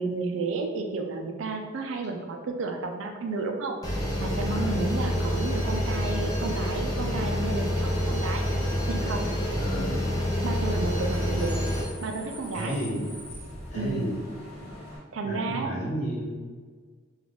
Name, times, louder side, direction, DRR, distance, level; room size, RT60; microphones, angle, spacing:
voice 1, 0.0-3.8 4.2-8.5 8.9-9.3 10.4-11.5 12.0-12.8 13.7-14.0 15.1-15.8, right 3 dB, 70° right, 4 dB, 0.4 m, -32 dB
sound 1, 3.8-11.8, equal, 15° left, 0.5 m, -27 dB
voice 2, 4.5-4.9 9.5-10.1 12.5-13.1 13.7-14.2 15.2-16.4, equal, 35° left, -5 dB, 0.9 m, -32 dB
Bus / Idling / Screech, 7.0-15.0, left 1 dB, 15° right, 1.2 m, -43 dB
3.7 x 2.3 x 3.5 m, 1.5 s
head